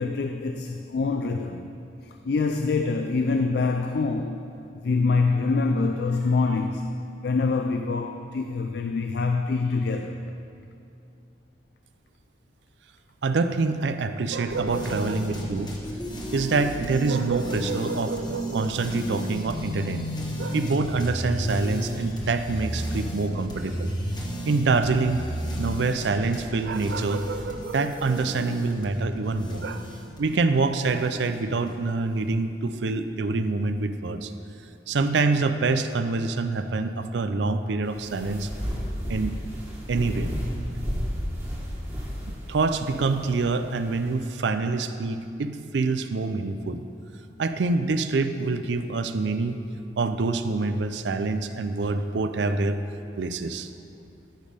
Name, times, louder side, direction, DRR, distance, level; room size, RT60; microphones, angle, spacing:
voice 1, 0.0-1.7 2.0-4.5 4.7-10.3, left 4 dB, 60° left, 0.4 m, -25 dB
voice 2, 13.2-15.7 16.3-20.1 20.4-23.9 24.5-25.2 25.6-29.9 30.2-34.3 34.9-38.5 39.1-39.3 39.9-40.3 42.5-46.8 47.4-49.6 50.0-52.8 53.2-53.7, right 3 dB, 75° right, 0.5 m, -26 dB
sound 1, 14.5-31.7, equal, 25° left, 1.1 m, -33 dB
sound 2, 37.8-44.2, equal, 15° right, 1.6 m, -33 dB
13.0 x 5.3 x 5.0 m
head